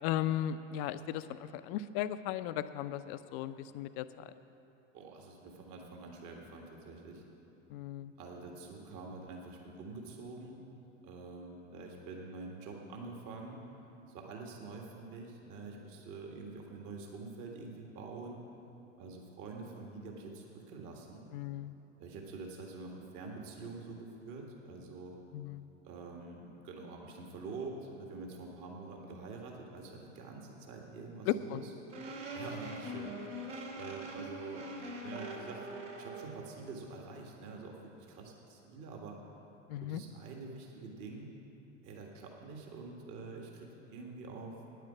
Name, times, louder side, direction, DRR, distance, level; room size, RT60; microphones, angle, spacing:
voice 1, 0.0-4.3 7.7-8.1 21.3-21.8 25.3-25.6 31.3-31.6 39.7-40.0, left 11 dB, 50° left, 12 dB, 0.6 m, -36 dB
voice 2, 4.9-7.2 8.2-10.6 11.0-13.6 14.1-18.4 19.0-21.3 22.0-25.2 25.8-31.7 32.3-33.1 33.7-34.6 35.0-39.2 39.8-41.3 41.8-44.6, right 3 dB, 50° right, 0 dB, 1.8 m, -46 dB
sound 1, 31.9-36.5, right 1 dB, 70° right, 2.4 m, -43 dB
9.6 x 9.2 x 8.5 m, 3.0 s
figure-of-eight pair, 75°, 38 cm